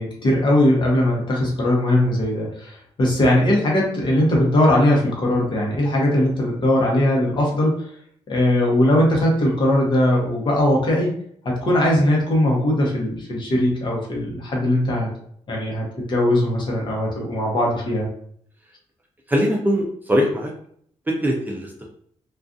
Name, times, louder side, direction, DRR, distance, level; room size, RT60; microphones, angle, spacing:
voice 1, 0.0-7.7 8.3-11.1 11.4-15.1 15.5-18.1, left 1 dB, 45° left, -2 dB, 0.8 m, -19 dB
voice 2, 19.3-20.5 21.2-21.9, equal, 15° right, -1 dB, 0.3 m, -21 dB
2.4 x 2.3 x 2.5 m, 0.64 s
wide cardioid pair, 150°, 12 cm